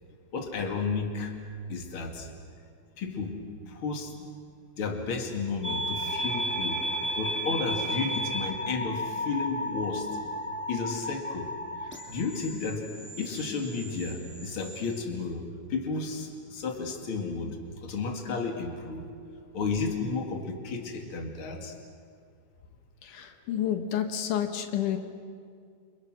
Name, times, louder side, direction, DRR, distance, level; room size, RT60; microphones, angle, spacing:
voice 1, 0.3-1.3 1.7-2.3 3.0-3.4 3.7-4.3 4.8-6.9 7.2-10.1 10.7-11.5 11.8-12.9 13.2-15.4 15.7-19.1 19.5-21.7, left 4 dB, 45° left, 3 dB, 2.9 m, -32 dB
sound 1, 5.6-15.0, equal, 5° left, 1.4 m, -34 dB
voice 2, 23.0-25.0, left 10 dB, 85° left, 6 dB, 2.9 m, -30 dB
28.5 x 27.0 x 6.3 m, 2.2 s
omnidirectional pair, 3.5 m